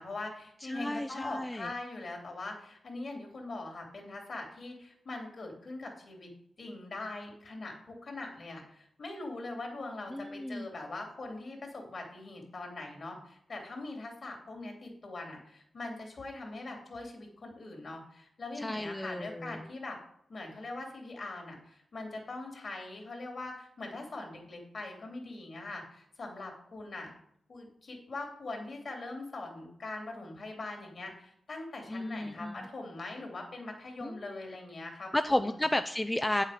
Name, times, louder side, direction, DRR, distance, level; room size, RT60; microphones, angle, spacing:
voice 1, 0.0-6.3 6.6-20.0 20.3-27.1 27.5-35.6, left 2 dB, 55° left, 2 dB, 3.1 m, -42 dB
voice 2, 0.7-1.7 10.1-10.7 18.6-19.7 31.9-32.7 34.0-34.4 35.1-36.4, left 1 dB, 10° left, 9 dB, 0.5 m, -33 dB
8.8 x 7.4 x 5.0 m, 0.72 s
cardioid pair, 90°, 0 cm